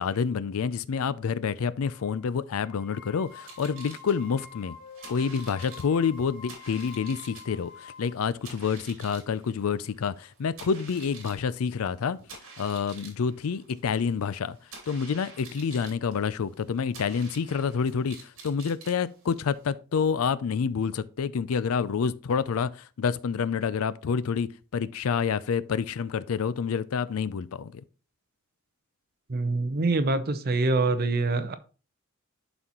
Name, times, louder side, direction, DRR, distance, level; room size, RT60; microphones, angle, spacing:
voice 1, 0.0-4.8 5.1-12.2 12.6-14.6 14.9-27.8, left 6 dB, 75° left, 0.4 m, -28 dB
sound 1, 1.8-2.2 2.6-8.2, left 5 dB, 40° left, 0.9 m, -47 dB
sound 2, 3.3-19.7, right 4 dB, 65° right, 2.5 m, -49 dB
voice 2, 29.3-31.6, right 3 dB, 45° right, 0.7 m, -25 dB
11.0 x 4.1 x 3.0 m
head